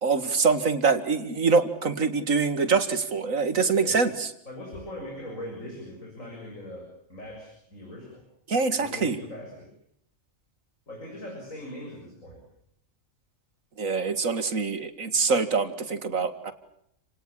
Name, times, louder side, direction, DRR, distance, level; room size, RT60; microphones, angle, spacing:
voice 1, 0.0-4.3 8.5-9.2 13.8-16.5, right 4 dB, 90° right, 10 dB, 2.5 m, -24 dB
voice 2, 3.7-4.0 4.5-8.2 8.7-9.7 10.9-12.4, left 1 dB, 85° left, 0 dB, 7.3 m, -40 dB
29.5 x 18.5 x 8.7 m, 0.72 s
omnidirectional pair, 1.3 m